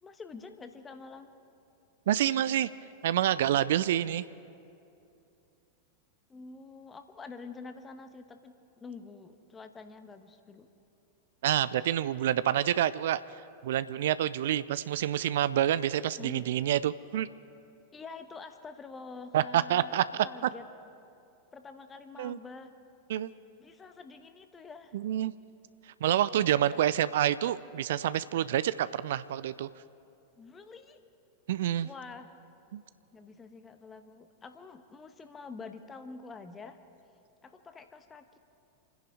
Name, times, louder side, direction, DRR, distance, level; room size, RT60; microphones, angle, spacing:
voice 1, 0.0-1.3 6.3-10.7 16.2-16.4 17.9-20.0 20.2-20.6 21.5-22.7 23.6-25.0 26.6-26.8 30.4-31.0 31.8-32.3 33.1-36.8 37.4-38.4, left 4 dB, 15° left, 8 dB, 1.1 m, -47 dB
voice 2, 2.1-2.7 3.0-4.2 11.4-13.2 13.6-17.3 19.3-20.3 22.2-22.4 23.1-23.3 24.9-25.3 26.0-29.7 31.5-31.9 32.7-32.8, right 11 dB, 55° right, 16 dB, 0.4 m, -27 dB
27.5 x 10.5 x 4.9 m, 2.7 s
figure-of-eight pair, 90°, 0 cm